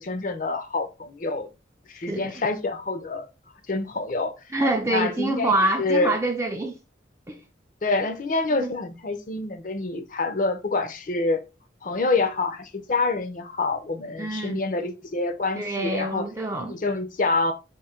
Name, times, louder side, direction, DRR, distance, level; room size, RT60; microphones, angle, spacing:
voice 1, 0.0-1.5 1.9-3.3 3.7-4.3 4.9-5.5 5.8-6.2 7.8-11.4 11.8-16.3 16.6-17.5, left 3 dB, 45° left, 0.5 m, -26 dB
voice 2, 4.5-6.8 7.3-7.4 8.6-8.7 14.2-14.6 15.6-16.8, right 2 dB, 15° right, 0.4 m, -26 dB
3.7 x 2.6 x 4.3 m
head